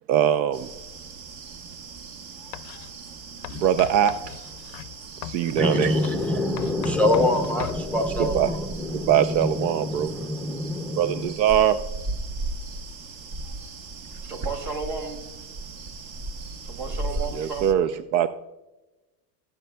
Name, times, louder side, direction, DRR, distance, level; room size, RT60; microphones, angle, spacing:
voice 1, 0.1-0.7 3.5-4.1 5.2-5.9 8.2-8.5 8.9-10.1 11.0-11.8 17.3-18.3, right 10 dB, 80° right, 0.6 m, -22 dB
sound 1, 0.5-17.7, right 3 dB, 35° right, 0.9 m, -37 dB
Writing, 2.5-2.9 3.4-7.8, left 16 dB, 50° left, 0.5 m, -39 dB
voice 2, 5.6-11.3, left 1 dB, 5° left, 0.5 m, -25 dB
voice 3, 14.2-15.2 16.6-17.9, right 4 dB, 55° right, 2.6 m, -33 dB
17.5 x 8.1 x 2.2 m
hypercardioid pair, 105°, 50 cm